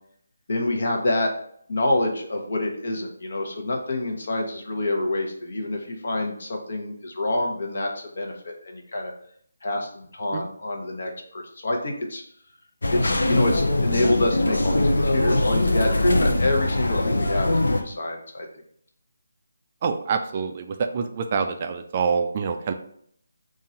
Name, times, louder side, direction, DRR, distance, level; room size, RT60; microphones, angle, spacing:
voice 1, 0.5-1.3 1.7-7.9 8.2-9.1 9.6-12.2 12.9-18.5, left 1 dB, 60° left, 2 dB, 1.0 m, -27 dB
sound 1, 12.8-17.8, left 1 dB, 80° left, 0.6 m, -22 dB
voice 2, 19.8-22.7, right 5 dB, 30° right, 7 dB, 0.3 m, -26 dB
3.8 x 2.5 x 4.3 m, 0.65 s
figure-of-eight pair, 165°, 0 cm